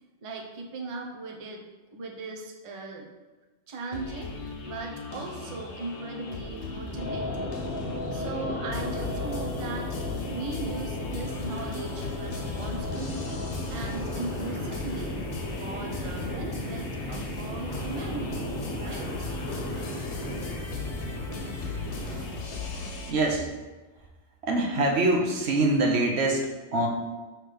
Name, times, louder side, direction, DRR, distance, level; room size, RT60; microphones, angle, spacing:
voice 1, 0.2-1.6 1.9-3.1 3.7-4.3 4.7-7.6 8.1-9.9 10.3-13.2 13.7-15.2 15.5-19.1, right 3 dB, 35° right, 0 dB, 0.7 m, -38 dB
sound 1, 3.9-23.1, left 3 dB, 80° left, 1.2 m, -38 dB
sound 2, 6.9-22.3, left 1 dB, 20° left, 1.0 m, -35 dB
sound 3, 7.0-13.5, left 3 dB, 55° left, 0.8 m, -37 dB
voice 2, 23.1-23.5 24.4-26.9, right 2 dB, 70° right, 1 dB, 1.1 m, -24 dB
5.9 x 3.2 x 5.0 m, 1.2 s
omnidirectional pair, 1.2 m